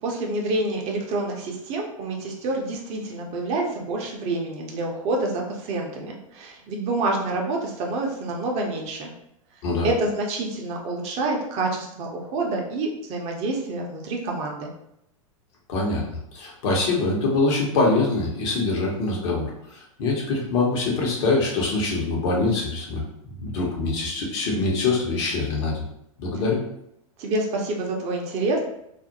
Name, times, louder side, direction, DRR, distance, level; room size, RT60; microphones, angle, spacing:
voice 1, 0.0-9.1 9.8-14.7 27.2-28.6, right 2 dB, 40° right, 0 dB, 0.6 m, -27 dB
voice 2, 15.7-16.0 16.3-25.8 26.2-26.6, left 3 dB, 55° left, -2 dB, 0.9 m, -24 dB
2.4 x 2.1 x 2.8 m, 0.77 s
hypercardioid pair, 100°, 18 cm